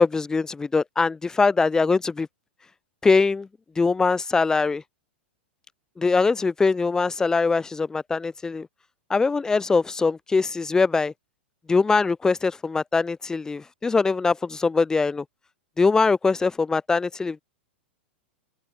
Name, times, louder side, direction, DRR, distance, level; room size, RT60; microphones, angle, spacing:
voice 1, 0.0-2.3 3.0-3.5 3.8-4.8 6.0-8.7 9.1-11.1 11.7-15.2 15.8-17.4, left 4 dB, 10° left, 0.4 m, -22 dB
open air
figure-of-eight pair, 100°, 6 cm